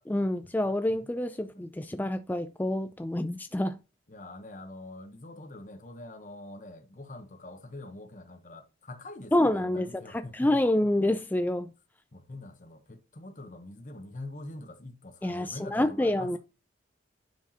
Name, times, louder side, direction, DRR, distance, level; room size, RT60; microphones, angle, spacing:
voice 1, 0.1-3.7 9.3-11.7 15.2-16.4, left 1 dB, 10° left, 0.3 m, -27 dB
voice 2, 1.3-1.7 4.1-10.8 12.1-16.4, left 2 dB, 40° left, 0.9 m, -45 dB
10.0 x 4.8 x 2.8 m
head